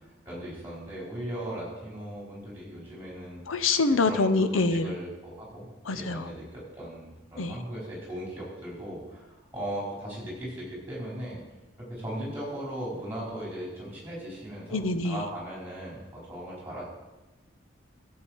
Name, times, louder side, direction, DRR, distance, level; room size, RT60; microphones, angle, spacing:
voice 1, 0.2-3.4 4.0-11.4 11.8-16.8, right 1 dB, 10° right, -6 dB, 4.7 m, -38 dB
voice 2, 3.5-4.9 5.9-6.3 7.4-7.6 14.7-15.2, left 3 dB, 90° left, 11 dB, 0.7 m, -25 dB
14.0 x 7.6 x 4.6 m, 1.1 s
head